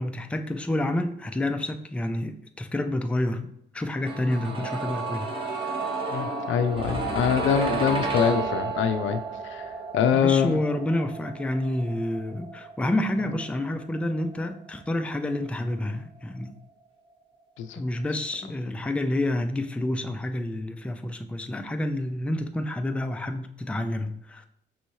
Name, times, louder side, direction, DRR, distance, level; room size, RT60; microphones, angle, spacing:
voice 1, 0.0-3.5 3.7-5.5 10.1-16.6 17.8-24.5, left 1 dB, 5° left, 6 dB, 0.4 m, -29 dB
sound 1, 4.1-15.9 16.2-16.3, right 3 dB, 25° right, 0.7 m, -33 dB
voice 2, 6.1-10.6 17.6-17.8, left 7 dB, 80° left, 8 dB, 0.5 m, -24 dB
sound 2, 9.3-10.7, left 2 dB, 80° right, 1.2 m, -44 dB
5.5 x 3.0 x 2.7 m, 0.73 s
cardioid pair, 90°, 20 cm